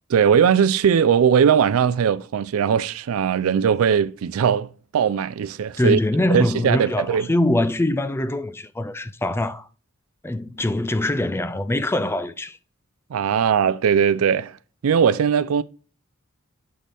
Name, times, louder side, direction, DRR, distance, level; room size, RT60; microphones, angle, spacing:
voice 1, 0.1-6.0 6.3-7.3 13.1-14.6 14.8-15.6, right 7 dB, 80° right, 0.4 m, -19 dB
voice 2, 5.8-9.7 10.2-12.6, left 1 dB, 10° left, 0.3 m, -23 dB
7.6 x 4.1 x 3.4 m
head